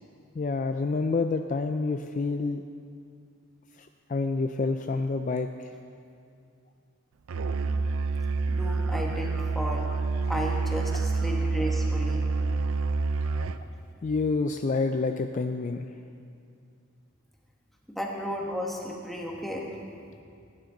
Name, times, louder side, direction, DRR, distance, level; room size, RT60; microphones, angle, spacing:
voice 1, 0.4-2.6 3.8-5.7 14.0-16.0, left 3 dB, 35° left, 7 dB, 0.3 m, -28 dB
Musical instrument, 7.3-13.7, right 3 dB, 75° right, 0.5 m, -28 dB
voice 2, 8.5-9.9 10.3-12.2 17.9-19.7, equal, ahead, -1 dB, 1.2 m, -33 dB
18.0 x 9.8 x 3.9 m, 2.4 s
head